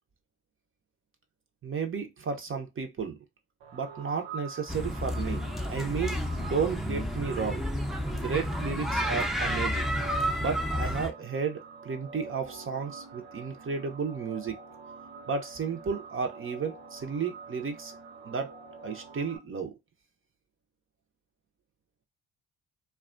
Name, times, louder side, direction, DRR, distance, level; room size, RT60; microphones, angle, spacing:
voice 1, 1.6-3.2 3.7-7.6 8.1-9.9 10.4-14.6 15.3-17.9 18.2-18.5 18.8-19.7, right 5 dB, 40° right, 0.6 m, -33 dB
sound 1, 3.6-19.4, right 5 dB, 85° right, 0.7 m, -46 dB
sound 2, 4.7-11.1, equal, ahead, 0.6 m, -31 dB
2.3 x 2.2 x 2.4 m
supercardioid pair, 50°, 34 cm